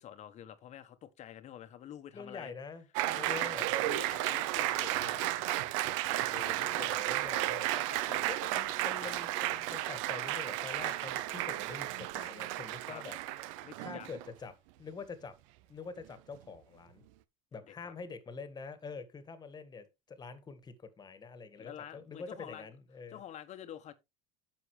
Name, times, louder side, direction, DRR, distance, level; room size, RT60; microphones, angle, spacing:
voice 1, 0.0-2.5 3.1-5.8 6.1-7.0 7.7-8.4 9.0-9.1 12.9-13.0 13.6-14.1 17.7-17.9 21.6-22.7 23.1-23.9, left 10 dB, 45° left, 1.3 m, -48 dB
voice 2, 2.1-2.9 3.1-3.7 6.6-7.7 8.3-13.2 13.8-14.5 14.8-15.3 15.7-17.0 17.5-23.2, left 4 dB, 25° left, 1.9 m, -46 dB
Applause, 2.9-14.3, right 15 dB, 75° right, 0.7 m, -33 dB
9.9 x 7.0 x 3.3 m
supercardioid pair, 110°, 17 cm